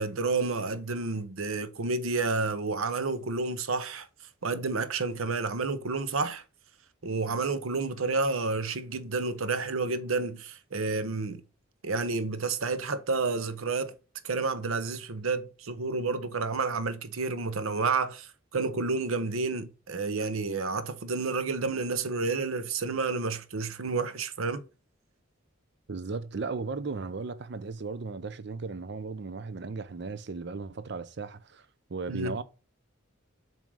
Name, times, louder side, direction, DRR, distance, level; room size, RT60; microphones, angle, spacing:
voice 1, 0.0-4.1 4.4-6.4 7.0-11.4 11.8-13.9 14.2-24.6 32.1-32.4, right 3 dB, 85° right, 0.8 m, -30 dB
voice 2, 25.9-32.4, right 4 dB, 55° right, 0.5 m, -36 dB
7.3 x 2.8 x 4.7 m
head